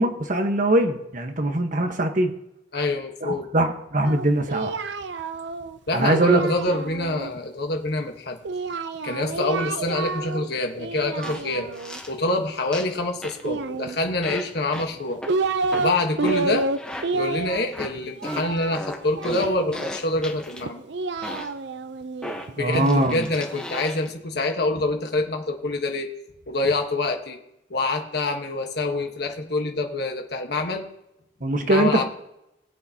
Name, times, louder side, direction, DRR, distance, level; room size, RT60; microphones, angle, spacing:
voice 1, 0.0-2.3 3.2-4.7 5.9-6.4 22.6-23.2 31.4-32.0, right 1 dB, 45° right, 5 dB, 1.2 m, -22 dB
voice 2, 2.7-3.5 5.9-8.4 9.0-11.7 12.1-15.2 15.7-16.7 17.1-20.8 22.6-26.1 26.5-27.4 27.7-30.9 31.6-32.0, left 2 dB, 60° left, 4 dB, 1.3 m, -26 dB
Singing, 4.0-7.3 8.4-10.5 10.8-12.0 13.4-14.4 14.9-19.8 20.6-22.9, right 3 dB, 65° right, 0.6 m, -29 dB
sound 1, 11.2-11.4 11.7-12.1 12.7-13.0 13.2-13.5 14.2-14.4 14.7-14.9 15.2-15.3 15.7-15.9 16.2-16.4 16.7-17.1 17.7-17.9 18.2-20.6 21.2-21.5 22.2-24.1, left 1 dB, 5° left, 1.1 m, -35 dB
20.5 x 8.6 x 2.9 m, 0.86 s
head